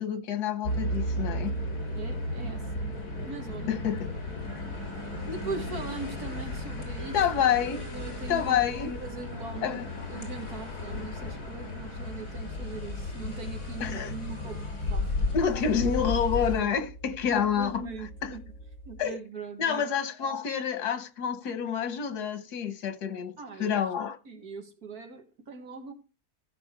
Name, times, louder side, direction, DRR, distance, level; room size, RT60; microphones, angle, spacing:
voice 1, 0.0-1.6 3.7-4.1 7.1-7.8 8.3-9.0 9.6-9.8 13.8-14.1 15.3-17.8 18.2-18.3 19.0-19.2 19.6-23.3 23.6-24.2, left 8 dB, 90° left, 1.6 m, -28 dB
sound 1, 0.6-16.6, left 1 dB, 75° left, 3.7 m, -34 dB
voice 2, 1.9-2.9 3.2-3.7 5.3-7.2 7.7-8.7 9.0-9.8 10.1-14.6 14.9-15.1 17.3-18.4 18.9-19.9 23.4-23.8 24.3-25.9, right 4 dB, 75° right, 2.3 m, -40 dB
sound 2, 7.0-15.3, right 5 dB, 55° right, 2.4 m, -53 dB
sound 3, 12.2-19.1, right 1 dB, 55° left, 1.4 m, -47 dB
15.0 x 6.1 x 4.5 m
omnidirectional pair, 1.7 m